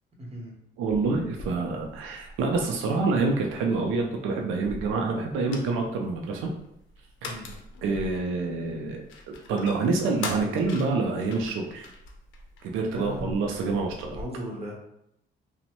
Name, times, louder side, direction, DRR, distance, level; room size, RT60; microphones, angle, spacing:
voice 1, 0.2-0.5 7.2-7.5 12.8-13.3 14.1-14.8, equal, 30° right, -1 dB, 0.9 m, -37 dB
voice 2, 0.8-6.5 7.2-7.3 7.8-11.9 12.6-14.2, right 3 dB, 90° right, 1 dB, 0.4 m, -27 dB
sound 1, 0.9-14.2, left 2 dB, 75° left, 0.5 m, -43 dB
3.0 x 2.1 x 2.9 m, 0.79 s
cardioid pair, 90°, 20 cm